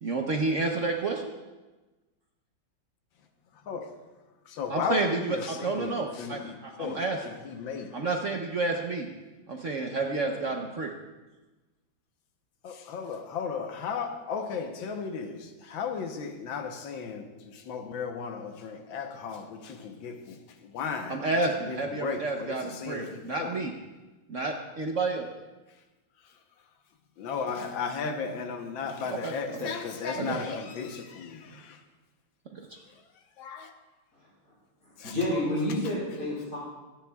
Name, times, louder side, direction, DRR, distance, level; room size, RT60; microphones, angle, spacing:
voice 1, 0.0-1.3 4.7-7.2 7.9-9.1 9.5-10.9 21.1-23.7 24.3-25.3 29.1-29.7 30.2-30.6 32.5-32.7, right 3 dB, 55° right, 0.9 m, -30 dB
voice 2, 4.6-7.0 7.6-7.9 12.6-15.4 15.7-17.2 17.7-20.2 20.7-21.2 21.7-23.5 27.2-31.4 33.4-33.7, left 6 dB, 80° left, 1.7 m, -34 dB
voice 3, 34.1-34.5 34.8-36.6, left 1 dB, 40° left, 3.6 m, -30 dB
25.0 x 9.7 x 2.3 m
omnidirectional pair, 2.1 m